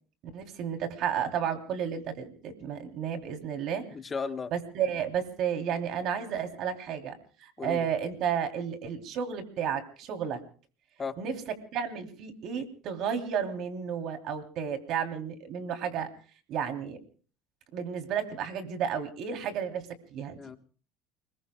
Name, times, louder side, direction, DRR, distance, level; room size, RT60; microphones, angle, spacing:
voice 1, 0.3-3.8 4.5-7.1 7.4-10.4 11.2-11.3 11.7-16.1 16.5-17.0 17.7-20.4, right 8 dB, 60° right, 5 dB, 3.1 m, -32 dB
voice 2, 3.9-4.5 7.6-7.9 11.0-11.2 20.4-20.6, left 5 dB, 25° left, 10 dB, 1.3 m, -35 dB
30.0 x 21.0 x 2.3 m, 0.41 s
supercardioid pair, 110°, 0 cm